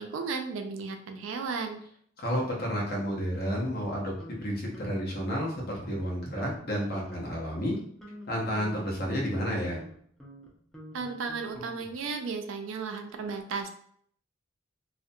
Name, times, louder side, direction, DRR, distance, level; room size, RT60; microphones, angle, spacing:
voice 1, 0.0-1.8 10.9-13.7, right 4 dB, 85° right, 5 dB, 0.4 m, -34 dB
voice 2, 2.2-4.1 4.4-7.8 8.3-9.8, equal, 50° left, -3 dB, 0.8 m, -31 dB
sound 1, 3.4-4.4 4.7-5.2 5.6-6.1 6.4-6.6 6.9-7.4 7.7-12.1, equal, ahead, 0.4 m, -46 dB
2.4 x 2.1 x 2.6 m, 0.63 s
head